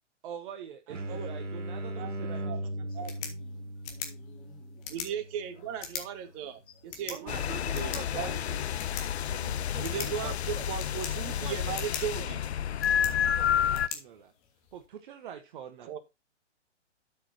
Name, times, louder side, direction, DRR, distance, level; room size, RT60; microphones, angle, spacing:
voice 1, 0.2-2.7 3.0-3.2 7.1-8.6 9.3-10.8 11.2-12.4 13.0-14.3 14.7-16.0, right 9 dB, 45° right, 1.2 m, -45 dB
sound 1, 0.9-6.4, right 1 dB, 80° right, 1.1 m, -39 dB
voice 2, 2.7-4.8 6.7-7.1, left 8 dB, 15° left, 1.3 m, -58 dB
sound 2, 2.9-14.9, left 7 dB, 30° left, 2.5 m, -44 dB
voice 3, 4.9-8.7 9.8-12.4 15.8-16.0, right 9 dB, 30° right, 1.8 m, -37 dB
sound 3, 7.3-13.9, left 9 dB, 60° left, 0.6 m, -30 dB
13.0 x 6.8 x 2.8 m
figure-of-eight pair, 125°, 36 cm